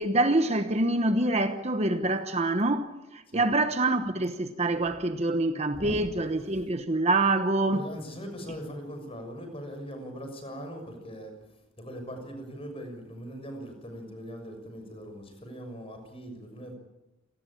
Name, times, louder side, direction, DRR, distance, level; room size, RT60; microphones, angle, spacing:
voice 1, 0.0-7.8, right 2 dB, 30° right, 1.1 m, -26 dB
voice 2, 7.7-11.3 11.8-16.7, equal, 25° left, 6.5 m, -40 dB
28.0 x 19.0 x 8.8 m
head